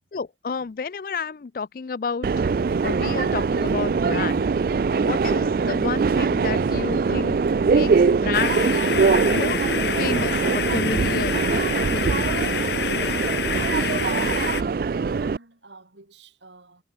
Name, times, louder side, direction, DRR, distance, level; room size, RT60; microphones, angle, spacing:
voice 1, 0.1-2.3 2.8-4.5 5.0-8.6 9.3-9.6 10.0-11.4 11.9-12.6, left 5 dB, 50° left, 0.4 m, -30 dB
Subway metro underground, 2.2-15.4, right 5 dB, 55° right, 0.3 m, -22 dB
sound 1, 8.3-14.6, left 7 dB, 70° left, 0.8 m, -28 dB
voice 2, 13.8-16.8, right 3 dB, 90° right, 4.3 m, -47 dB
head